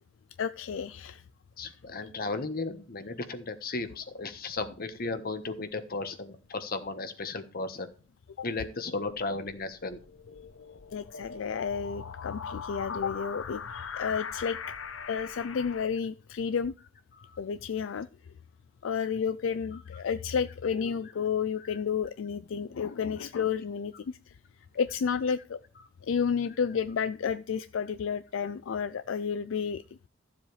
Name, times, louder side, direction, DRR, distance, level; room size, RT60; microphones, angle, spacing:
voice 1, 0.4-1.2 8.4-8.5 10.9-14.6 15.1-16.7 17.4-18.1 18.8-24.2 24.8-25.6 26.0-29.8, left 6 dB, 70° left, 0.4 m, -31 dB
voice 2, 1.6-7.9 8.4-10.0 17.2-17.4 21.6-21.8, left 3 dB, 50° left, 1.3 m, -35 dB
sound 1, 9.2-15.9, left 6 dB, 90° left, 0.9 m, -41 dB
14.0 x 7.5 x 3.3 m
head